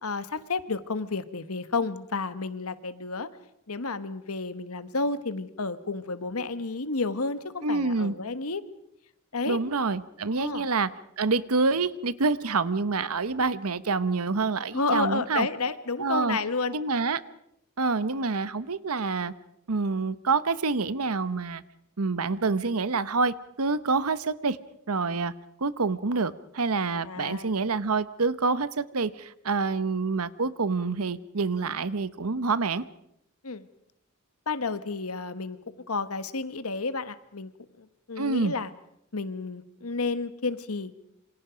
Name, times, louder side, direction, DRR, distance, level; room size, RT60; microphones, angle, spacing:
voice 1, 0.0-3.3 3.7-8.6 9.3-9.6 10.3-10.7 14.7-16.8 27.0-27.6 33.4-33.7 34.5-35.6 35.9-37.5 37.8-38.7 39.1-40.9, left 3 dB, 75° left, 13 dB, 1.4 m, -31 dB
voice 2, 7.6-8.1 9.5-10.9 11.2-15.5 16.0-16.4 16.7-17.2 17.8-19.3 19.7-21.6 22.0-24.6 24.9-25.3 25.6-32.8 38.2-38.5, right 4 dB, 75° right, 16 dB, 1.0 m, -27 dB
27.5 x 26.0 x 5.1 m, 0.77 s
head